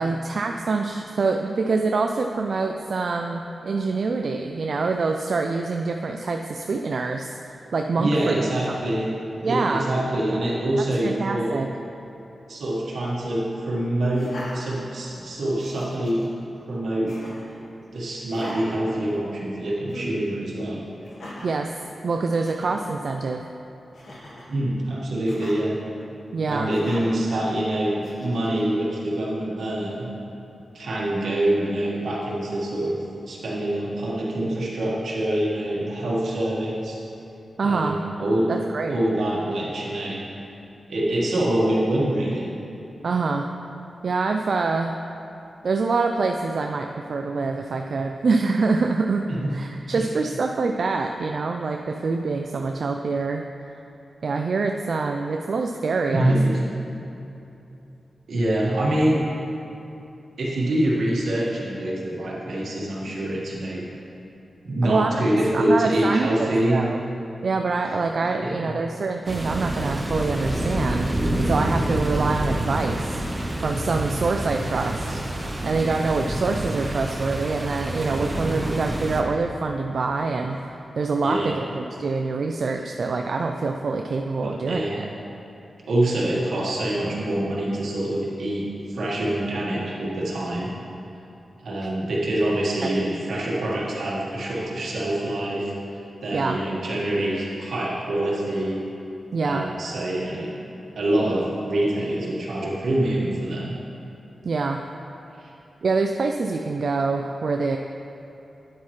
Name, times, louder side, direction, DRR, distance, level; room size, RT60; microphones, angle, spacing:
voice 1, 0.0-7.4 7.7-8.8 9.4-9.9 11.0-11.7 21.4-21.7 22.0-23.4 26.3-26.7 27.3-27.4 37.6-38.0 38.5-39.0 43.0-43.5 44.0-45.0 45.6-49.2 49.5-53.5 54.2-56.3 64.8-65.3 65.5-67.0 67.4-71.1 71.4-73.2 73.6-75.2 75.6-85.1 92.8-92.9 96.3-96.6 99.3-99.7 104.4-104.8 105.8-107.8, right 4 dB, 65° right, 3 dB, 0.3 m, -25 dB
voice 2, 8.0-9.1 9.4-11.6 12.5-16.2 16.7-17.2 17.9-20.8 24.5-25.8 26.5-30.1 30.7-33.0 33.3-37.0 37.6-38.5 38.9-40.2 40.9-42.5 49.3-49.5 49.9-50.0 56.1-56.6 58.3-59.2 60.4-63.8 64.6-66.8 68.3-68.7 81.2-81.6 84.4-85.0 85.9-90.7 91.6-98.8 99.4-100.5 100.9-103.8 105.4-105.5, right 1 dB, 85° right, -4 dB, 1.6 m, -25 dB
Laughter, 14.1-15.2 15.6-16.3 17.1-17.5 18.3-19.5 19.9-20.2 21.0-21.6 22.1-22.2 22.4-22.8 23.9-24.5 25.3-25.6 26.7-27.2 28.0-28.6, left 1 dB, 65° left, 1.4 m, -40 dB
sound 1, 69.3-79.2, right 1 dB, 20° right, 0.8 m, -27 dB
9.3 x 8.3 x 3.2 m, 2.9 s
wide cardioid pair, 105°, 0 cm